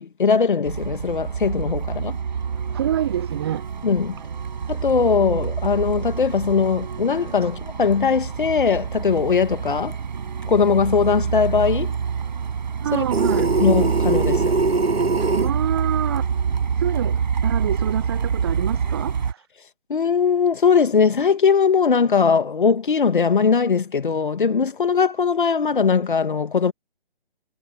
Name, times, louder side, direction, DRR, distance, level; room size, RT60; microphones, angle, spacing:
voice 1, 0.0-2.2 3.8-4.2 4.7-10.0 10.4-12.0 12.9-13.1 13.6-14.5 19.9-26.7, left 5 dB, 55° left, 2.0 m, -20 dB
Truck, 0.7-19.3, right 6 dB, 50° right, 5.4 m, -27 dB
voice 2, 2.7-3.6 12.8-13.5 15.3-16.3 16.8-19.4, right 11 dB, 25° right, 1.1 m, -26 dB
sound 1, 13.1-15.5, right 3 dB, 80° right, 1.2 m, -21 dB
figure-of-eight pair, 145°, 30 cm